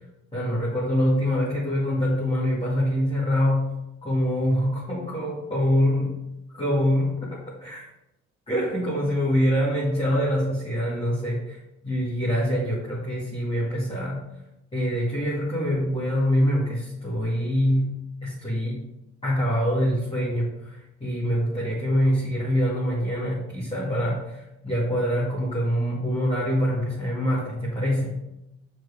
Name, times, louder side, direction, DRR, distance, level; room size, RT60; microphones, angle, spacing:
voice 1, 0.3-3.7 4.0-6.2 6.5-7.3 7.6-7.9 8.5-11.6 11.8-14.2 14.7-18.9 19.2-28.1, equal, 20° left, -7 dB, 2.4 m, -25 dB
6.2 x 4.7 x 5.3 m, 0.89 s
cardioid pair, 90°, 30 cm